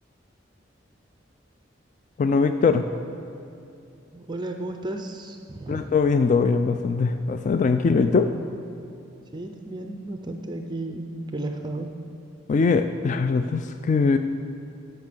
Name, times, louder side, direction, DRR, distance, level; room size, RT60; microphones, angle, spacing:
voice 1, 2.2-2.8 5.7-8.3 12.5-14.2, left 4 dB, 40° left, 8 dB, 0.3 m, -21 dB
voice 2, 4.1-5.8 9.3-11.9, right 2 dB, 25° right, 5 dB, 0.5 m, -33 dB
11.5 x 5.9 x 6.7 m, 2.7 s
head